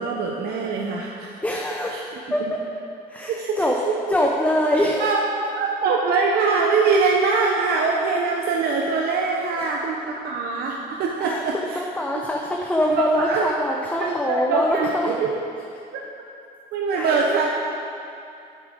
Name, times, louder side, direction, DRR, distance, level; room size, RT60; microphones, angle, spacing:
voice 1, 0.0-1.4 1.9-2.0 3.3-3.6 5.0-5.2 5.6-11.8 12.9-13.4 14.0-15.3 16.7-17.5, right 4 dB, 70° right, -1 dB, 0.8 m, -23 dB
voice 2, 1.4-2.0 2.3-2.4 3.1-3.8 4.1-5.1 9.6-9.7 11.2-15.1 16.9-17.3, left 1 dB, 10° left, -1 dB, 0.7 m, -24 dB
9.6 x 8.1 x 3.8 m, 2.5 s
cardioid pair, 110°, 17 cm